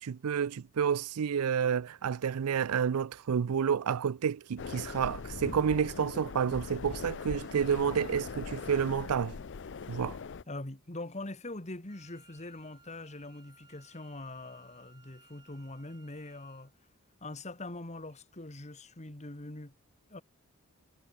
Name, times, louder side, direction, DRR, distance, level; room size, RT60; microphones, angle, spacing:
voice 1, 0.0-9.4 9.9-10.2, right 7 dB, 90° right, 0.4 m, -30 dB
sound 1, 4.6-10.4, left 5 dB, 55° left, 0.5 m, -41 dB
voice 2, 10.5-16.7 17.2-19.7 20.1-20.2, left 2 dB, 30° left, 1.8 m, -43 dB
Wind instrument woodwind instrument, 11.9-16.7, right 4 dB, 20° right, 3.5 m, -62 dB
head